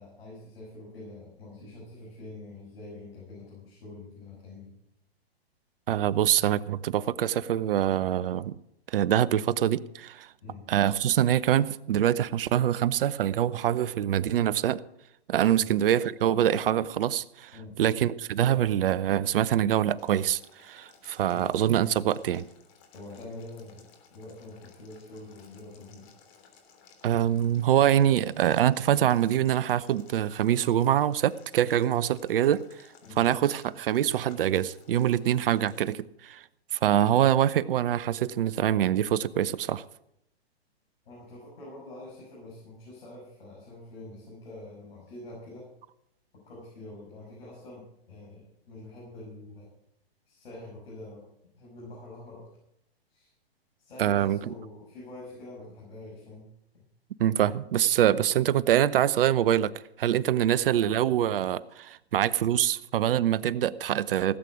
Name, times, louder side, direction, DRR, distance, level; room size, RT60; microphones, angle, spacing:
voice 1, 0.0-4.7 10.4-10.6 15.5-15.8 17.5-17.8 21.3-21.5 22.9-23.9 24.1-26.1 33.0-33.2 41.0-45.7 46.5-49.7 50.3-51.3 51.5-52.5 53.1-53.3 53.8-56.5 60.1-60.5, left 2 dB, 65° left, -4 dB, 6.6 m, -45 dB
voice 2, 5.9-8.5 8.9-10.3 10.7-14.8 15.3-17.5 17.8-22.5 27.0-32.6 33.2-36.4 36.7-39.8 54.0-54.5 57.2-59.7 60.0-64.4, right 11 dB, 60° right, 19 dB, 0.7 m, -24 dB
Boiling, 19.9-35.9, left 6 dB, 35° left, 3.2 m, -58 dB
17.5 x 8.4 x 6.2 m, 0.77 s
hypercardioid pair, 120°, 32 cm